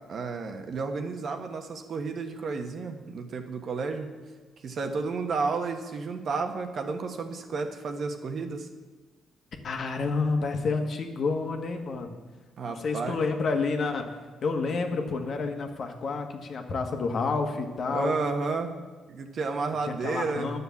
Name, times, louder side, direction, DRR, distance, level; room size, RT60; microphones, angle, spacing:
voice 1, 0.1-4.1 4.6-8.7 12.6-13.2 17.9-18.8 19.1-20.5, right 4 dB, 55° right, 5 dB, 1.3 m, -31 dB
voice 2, 9.6-12.2 12.6-14.1 14.4-18.1 19.9-20.6, left 4 dB, 55° left, 4 dB, 1.5 m, -29 dB
10.5 x 7.0 x 7.1 m, 1.4 s
cardioid pair, 90°, 0 cm